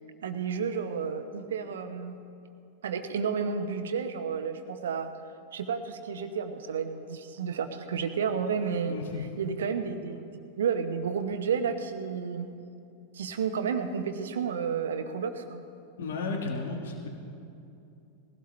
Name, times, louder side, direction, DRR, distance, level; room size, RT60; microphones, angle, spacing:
voice 1, 0.2-2.2 2.8-5.1 5.5-9.0 9.4-12.5 13.1-15.6, right 6 dB, 65° right, 8 dB, 1.0 m, -31 dB
voice 2, 8.9-9.2 16.0-17.1, left 3 dB, 60° left, 2 dB, 1.6 m, -33 dB
20.0 x 16.0 x 3.3 m, 2.7 s
figure-of-eight pair, 90°, 0 cm